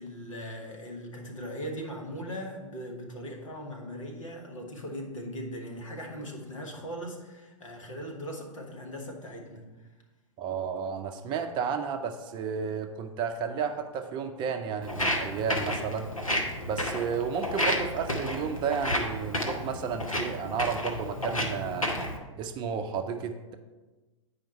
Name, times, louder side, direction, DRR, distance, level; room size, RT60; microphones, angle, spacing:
voice 1, 0.0-9.7, equal, 70° left, 1 dB, 1.7 m, -39 dB
voice 2, 10.4-16.1 16.6-21.9 22.4-23.5, right 6 dB, 25° right, 6 dB, 0.6 m, -32 dB
Walk footsteps, 14.8-22.2, equal, 85° left, 1.2 m, -31 dB
9.1 x 5.0 x 4.3 m, 1.2 s
figure-of-eight pair, 105°, 17 cm